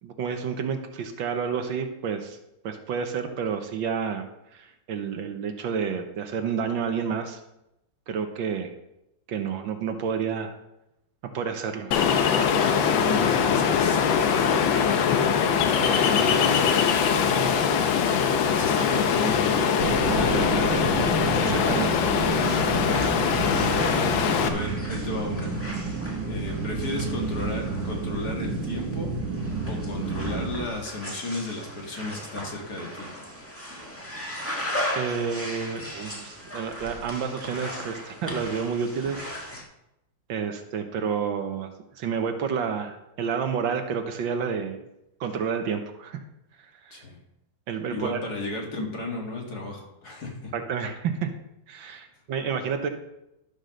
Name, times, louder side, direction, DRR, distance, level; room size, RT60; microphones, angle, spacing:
voice 1, 0.0-2.4 2.6-7.4 8.1-8.7 9.3-10.5 11.3-12.0 21.4-22.1 34.9-39.3 40.3-44.8 45.2-46.2 46.8-47.0 47.7-48.2 50.5-51.3 51.7-52.9, right 6 dB, 70° right, 6 dB, 1.6 m, -30 dB
Ocean, 11.9-24.5, left 7 dB, 70° left, 1.5 m, -22 dB
voice 2, 12.8-14.0 14.3-15.1 15.7-18.0 18.5-21.2 23.7-25.5 26.2-29.1 29.7-33.1 46.9-47.2 47.9-50.5 51.9-52.0, left 2 dB, 50° left, 0 dB, 2.4 m, -34 dB
sound 1, 19.8-30.7, right 3 dB, 55° right, 1.3 m, -30 dB
sound 2, 22.3-39.6, equal, 5° left, 1.3 m, -37 dB
11.5 x 5.3 x 6.3 m, 0.88 s
omnidirectional pair, 2.3 m